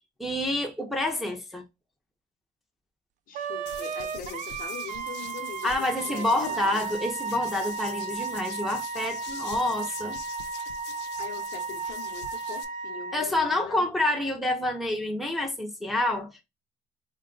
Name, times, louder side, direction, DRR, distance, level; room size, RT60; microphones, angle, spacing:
voice 1, 0.2-1.6 5.6-10.2 13.1-16.4, left 1 dB, ahead, 0.6 m, -28 dB
voice 2, 3.3-6.9 11.2-13.8, left 7 dB, 55° left, 0.8 m, -42 dB
Wind instrument woodwind instrument, 3.3-13.2, right 5 dB, 45° right, 0.4 m, -34 dB
sound 1, 3.7-12.6, left 8 dB, 85° left, 0.6 m, -45 dB
3.8 x 2.2 x 3.7 m
cardioid pair, 155°, 18 cm